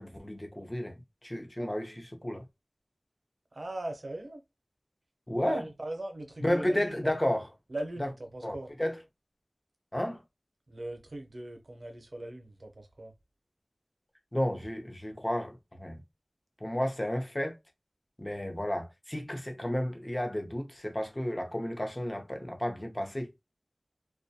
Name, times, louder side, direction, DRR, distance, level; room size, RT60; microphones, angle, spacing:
voice 1, 0.0-2.4 5.3-5.6 6.4-7.5 8.0-8.1 8.4-9.0 9.9-10.2 14.3-16.0 16.6-17.6 18.2-23.3, left 1 dB, 30° left, 0.6 m, -32 dB
voice 2, 3.5-4.4 5.4-7.1 7.7-8.7 10.7-13.1, right 1 dB, 80° right, 0.6 m, -39 dB
2.2 x 2.2 x 2.7 m
wide cardioid pair, 45°, 0 cm